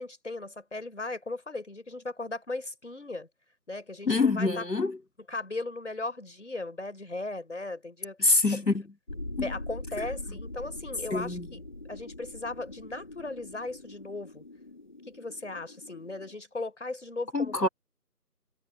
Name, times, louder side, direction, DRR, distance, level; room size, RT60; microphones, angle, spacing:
voice 1, 0.0-3.3 3.7-4.6 5.3-8.2 8.5-8.6 9.4-11.6 11.9-14.4 15.1-17.7, left 2 dB, 45° left, 5.0 m, -37 dB
voice 2, 4.1-5.0 8.2-8.9 9.4-9.5 10.0-10.1 11.1-11.5 17.3-17.7, left 3 dB, 85° left, 2.6 m, -25 dB
sound 1, 9.1-16.3, left 2 dB, 30° left, 2.5 m, -42 dB
figure-of-eight pair, 170°, 48 cm